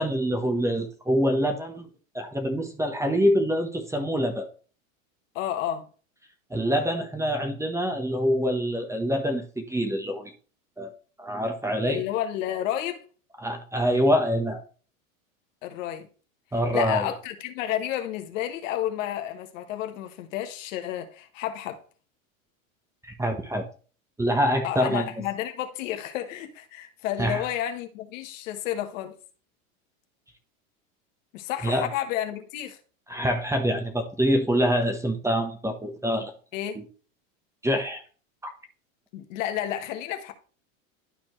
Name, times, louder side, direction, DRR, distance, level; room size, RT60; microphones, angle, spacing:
voice 1, 0.0-1.9 2.1-4.5 6.5-10.3 10.8-10.9 11.2-12.0 13.4-14.6 16.5-17.0 23.0-23.6 24.2-25.1 27.2-27.4 31.6-31.9 33.1-36.3 36.8-36.9 37.6-38.0, equal, 5° right, 1.0 m, -25 dB
voice 2, 5.3-5.9 11.8-13.0 15.6-16.1 16.7-21.8 24.6-29.1 31.3-32.8 36.5-36.8 39.1-40.3, left 11 dB, 65° left, 1.4 m, -31 dB
12.0 x 4.3 x 3.1 m
supercardioid pair, 115°, 41 cm